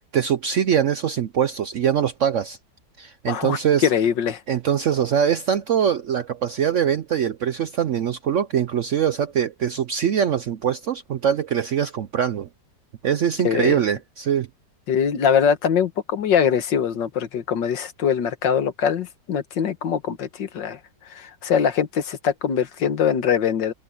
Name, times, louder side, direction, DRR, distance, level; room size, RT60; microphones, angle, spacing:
voice 1, 0.1-2.6 3.0-3.9 4.5-12.5 13.0-14.5, right 8 dB, 65° right, 0.7 m, -23 dB
voice 2, 3.3-4.4 13.4-13.8 14.9-20.8 21.1-23.7, left 7 dB, 85° left, 2.0 m, -22 dB
omnidirectional pair, 1.9 m